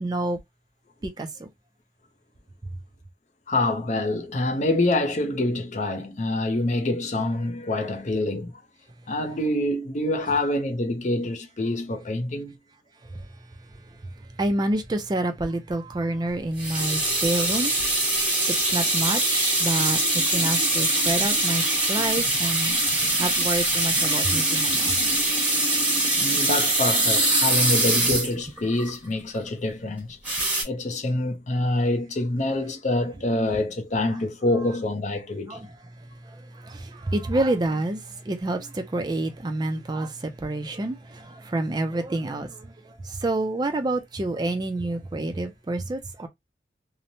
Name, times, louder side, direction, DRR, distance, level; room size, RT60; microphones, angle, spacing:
voice 1, 0.0-0.4 1.0-1.5 13.1-13.2 14.4-17.7 18.7-20.0 20.3-21.6 21.9-22.7 23.2-24.9 35.5-35.7 36.2-46.3, right 2 dB, 25° right, 0.3 m, -28 dB
voice 2, 3.5-8.5 9.1-12.6 26.2-30.2 30.6-35.6, left 2 dB, 40° left, 0.5 m, -26 dB
sound 1, 16.6-28.9 30.2-30.6, right 2 dB, 5° right, 1.3 m, -23 dB
2.9 x 2.1 x 2.6 m
head